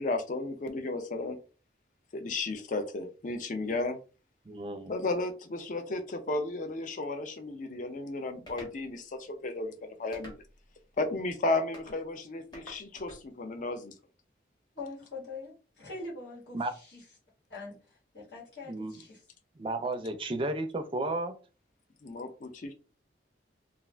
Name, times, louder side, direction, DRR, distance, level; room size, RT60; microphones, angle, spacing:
voice 1, 0.0-1.4 2.1-4.0 4.9-9.7 10.0-10.4 11.0-13.9 22.0-22.7, left 2 dB, 45° left, 0.5 m, -33 dB
voice 2, 4.5-4.9 16.5-16.7 18.7-18.9 19.6-21.3, right 2 dB, 30° right, 0.4 m, -33 dB
sound 1, 8.5-8.8 10.1-10.7 11.7-12.0 12.5-13.2, equal, 25° left, 1.0 m, -48 dB
voice 3, 14.7-17.0 17.5-19.2, left 3 dB, 75° left, 1.4 m, -43 dB
2.4 x 2.4 x 3.2 m
head